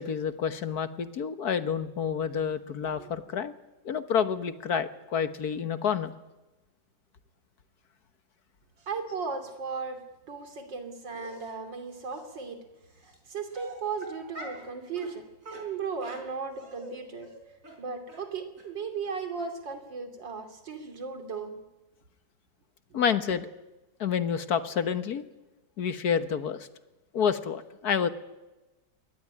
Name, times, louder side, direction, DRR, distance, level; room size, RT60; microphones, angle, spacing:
voice 1, 0.0-3.5 3.8-6.1 22.9-23.5 24.0-25.2 25.8-26.7 27.1-28.1, left 7 dB, 60° left, 11 dB, 1.7 m, -28 dB
voice 2, 8.8-10.0 10.3-12.6 12.9-17.3 17.8-21.6, right 5 dB, 85° right, 7 dB, 3.6 m, -36 dB
Dog, 11.1-11.5 12.1-12.2 13.0-13.2 13.5-14.7 15.0-15.1 15.4-16.9 17.2-17.4 17.6-17.8 18.1-18.2 18.6-18.7 19.0-19.1 19.4-19.5, right 1 dB, 45° right, 5.4 m, -44 dB
22.0 x 18.5 x 9.8 m, 1.0 s
omnidirectional pair, 1.9 m